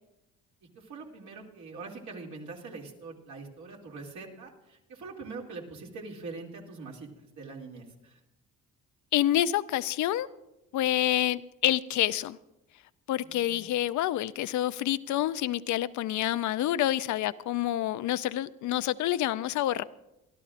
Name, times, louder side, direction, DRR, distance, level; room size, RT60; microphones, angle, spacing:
voice 1, 0.7-8.2 13.2-13.7, right 3 dB, 70° right, -1 dB, 2.6 m, -43 dB
voice 2, 9.1-10.3 10.7-12.4 13.1-19.8, left 13 dB, 75° left, 15 dB, 0.5 m, -28 dB
25.0 x 12.5 x 2.5 m, 0.94 s
cardioid pair, 90°, 30 cm